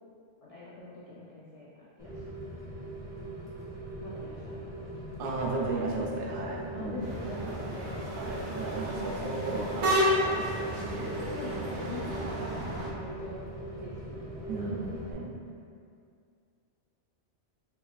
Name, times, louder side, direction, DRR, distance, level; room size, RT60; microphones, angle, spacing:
voice 1, 0.4-2.8 4.0-5.0 6.0-6.2 6.7-8.3 9.0-9.9 11.3-14.8, left 2 dB, 65° left, -7 dB, 0.3 m, -45 dB
Rain, 2.0-15.1, right 2 dB, 5° right, 0.4 m, -40 dB
voice 2, 5.2-7.0 8.1-11.2 12.2-12.7 14.5-15.4, right 2 dB, 55° right, -1 dB, 0.7 m, -35 dB
sound 1, 7.0-12.9, equal, 75° right, 1.1 m, -32 dB
4.4 x 2.3 x 3.5 m, 2.3 s
omnidirectional pair, 1.2 m